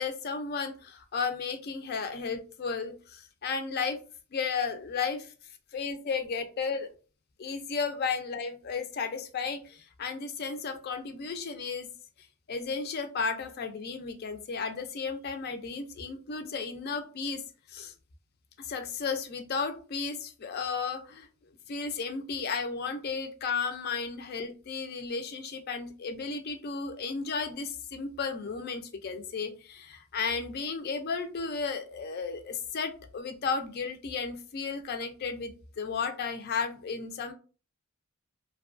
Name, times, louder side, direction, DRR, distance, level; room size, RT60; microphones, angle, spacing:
voice 1, 0.0-4.0 4.3-5.3 5.7-6.9 7.4-11.9 12.5-17.4 17.7-17.9 18.6-21.3 21.7-37.3, left 5 dB, 50° left, 8 dB, 0.4 m, -34 dB
2.6 x 2.2 x 2.5 m, 0.36 s
head